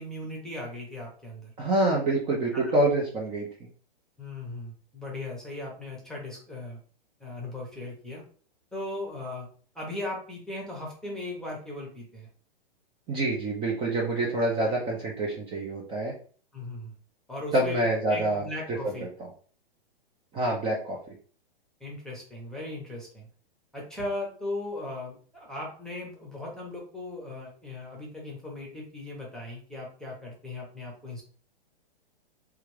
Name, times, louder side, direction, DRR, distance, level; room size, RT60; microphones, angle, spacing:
voice 1, 0.0-1.5 2.5-2.6 4.2-6.8 7.2-8.2 8.7-9.5 9.7-12.3 16.5-16.9 17.3-17.8 18.1-19.1 21.8-23.3 23.7-31.2, left 2 dB, ahead, -2 dB, 0.8 m, -38 dB
voice 2, 1.6-3.5 13.1-16.1 17.5-18.4 18.8-18.9 20.3-21.0, right 1 dB, 15° right, -2 dB, 0.5 m, -26 dB
3.3 x 2.4 x 3.2 m, 0.43 s
hypercardioid pair, 130°, 29 cm